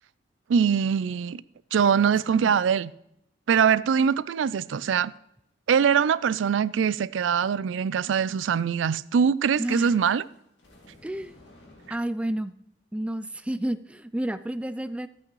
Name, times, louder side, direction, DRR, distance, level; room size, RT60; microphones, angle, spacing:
voice 1, 0.5-1.4 1.7-2.9 3.5-5.1 5.7-10.2, right 7 dB, 85° right, 0.4 m, -23 dB
voice 2, 2.0-2.5 9.6-9.9 11.0-11.4 11.9-12.5 12.9-15.1, right 1 dB, 5° right, 0.3 m, -31 dB
sound 1, 10.0-11.9, left 1 dB, 65° left, 2.3 m, -53 dB
12.5 x 8.5 x 3.1 m
head